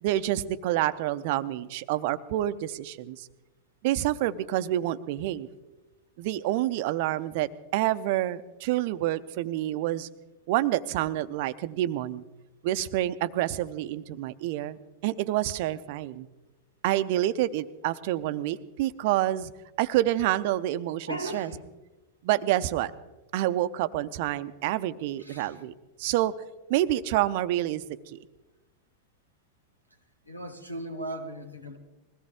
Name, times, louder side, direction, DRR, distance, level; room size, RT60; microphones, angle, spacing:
voice 1, 0.0-3.3 3.8-5.5 6.2-10.1 10.5-12.2 12.6-16.3 16.8-19.5 19.8-21.5 22.2-22.9 23.3-25.7 26.0-26.3 26.7-28.2, right 14 dB, 50° right, 14 dB, 0.7 m, -28 dB
voice 2, 21.1-21.7 25.2-25.6 30.3-31.8, right 1 dB, 90° left, 5 dB, 1.8 m, -37 dB
21.0 x 16.5 x 3.6 m, 1.1 s
figure-of-eight pair, 90°, 0 cm